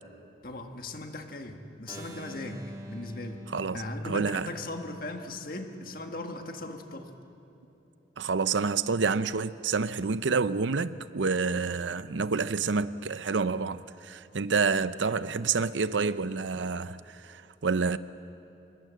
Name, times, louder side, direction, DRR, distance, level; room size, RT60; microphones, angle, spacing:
voice 1, 0.4-7.1, left 2 dB, 50° left, 1.7 m, -38 dB
Keyboard (musical), 1.9-7.7, right 1 dB, 20° right, 2.1 m, -48 dB
voice 2, 3.5-4.5 8.2-18.0, right 4 dB, 90° right, 0.6 m, -28 dB
26.5 x 21.0 x 7.7 m
head